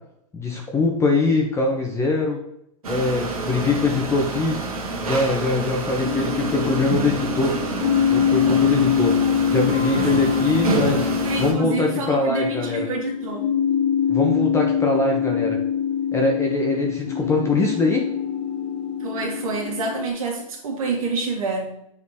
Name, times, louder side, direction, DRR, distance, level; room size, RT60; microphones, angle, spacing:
voice 1, 0.3-2.4 2.8-4.6 5.0-7.5 8.1-9.1 9.5-11.1 11.4-12.9 14.1-15.6 16.1-18.0, left 3 dB, 15° left, 1 dB, 0.9 m, -22 dB
sound 1, 2.8-11.5, right 2 dB, 90° right, 1.4 m, -27 dB
sound 2, 6.0-20.1, left 8 dB, 35° left, 1.4 m, -24 dB
voice 2, 11.2-13.5 19.0-21.8, right 4 dB, 75° right, 1 dB, 2.0 m, -28 dB
7.3 x 4.1 x 3.6 m, 0.77 s
hypercardioid pair, 120°, 18 cm